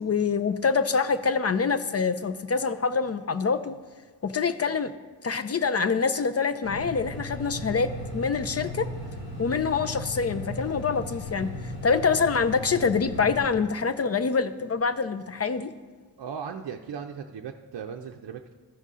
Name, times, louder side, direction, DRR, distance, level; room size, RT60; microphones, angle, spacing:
voice 1, 0.0-3.8 4.2-4.9 5.2-8.9 9.4-11.5 11.8-15.7, left 5 dB, 35° left, 10 dB, 0.4 m, -25 dB
sound 1, 6.6-13.5, left 2 dB, 75° left, 2.7 m, -36 dB
voice 2, 16.2-18.5, right 7 dB, 65° right, 2 dB, 0.6 m, -37 dB
14.0 x 5.4 x 3.7 m, 1.5 s
wide cardioid pair, 75°, 43 cm